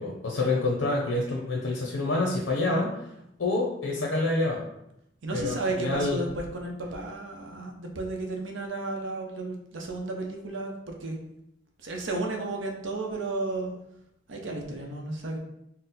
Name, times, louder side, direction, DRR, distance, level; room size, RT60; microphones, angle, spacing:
voice 1, 0.0-3.0 3.4-4.6 5.3-6.2, left 2 dB, 85° left, -2 dB, 0.6 m, -27 dB
voice 2, 5.2-11.2 11.8-13.8 14.3-15.4, right 2 dB, 85° right, 1 dB, 0.7 m, -33 dB
4.2 x 2.1 x 3.9 m, 0.81 s
head